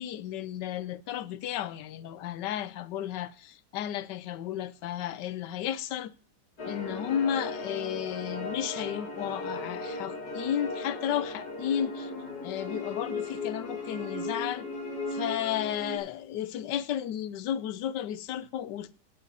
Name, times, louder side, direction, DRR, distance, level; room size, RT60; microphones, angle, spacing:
voice 1, 0.0-6.1 6.7-12.1 12.4-14.7 15.1-19.0, left 10 dB, 85° left, 1.3 m, -33 dB
sound 1, 6.6-16.0, left 3 dB, 60° left, 2.9 m, -36 dB
16.5 x 7.3 x 3.9 m
omnidirectional pair, 1.8 m